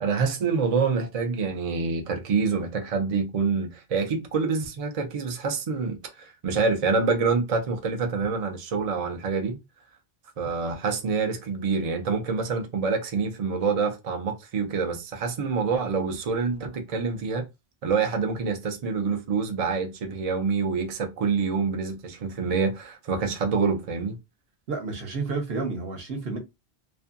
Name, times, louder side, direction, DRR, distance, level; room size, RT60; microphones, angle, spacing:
voice 1, 0.0-9.6 10.4-17.5 17.8-24.2, right 5 dB, 45° right, 0.5 m, -26 dB
voice 2, 24.7-26.4, right 4 dB, 65° right, 1.0 m, -30 dB
2.6 x 2.5 x 2.5 m
omnidirectional pair, 1.1 m